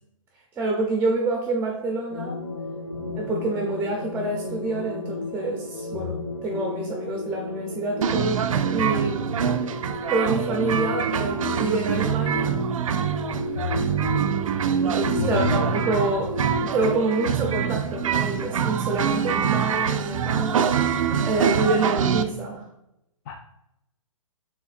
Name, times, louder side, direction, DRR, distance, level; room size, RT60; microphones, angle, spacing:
voice 1, 0.6-2.4 3.1-9.3 10.1-12.6 14.8-16.3 16.6-20.7 21.2-22.6, right 2 dB, 10° right, 1 dB, 0.6 m, -27 dB
sound 1, 2.1-17.3, left 2 dB, 75° left, 0.8 m, -34 dB
sound 2, 8.0-22.2, right 7 dB, 75° right, 0.4 m, -25 dB
voice 2, 15.2-15.6 23.3-23.4, left 6 dB, 35° left, 2 dB, 0.4 m, -29 dB
5.8 x 3.6 x 2.5 m, 0.83 s
hypercardioid pair, 130°, 17 cm